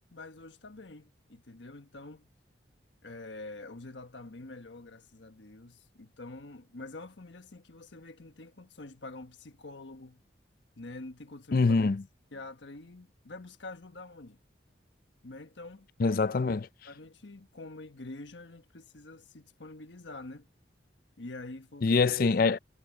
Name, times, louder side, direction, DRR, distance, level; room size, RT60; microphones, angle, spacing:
voice 1, 0.1-2.3 3.0-10.2 10.8-11.9 12.3-14.4 15.2-15.9 16.8-20.5 21.2-22.2, left 2 dB, 80° left, 1.3 m, -46 dB
voice 2, 11.5-12.0 16.0-16.7 21.8-22.6, left 4 dB, 50° left, 0.4 m, -24 dB
head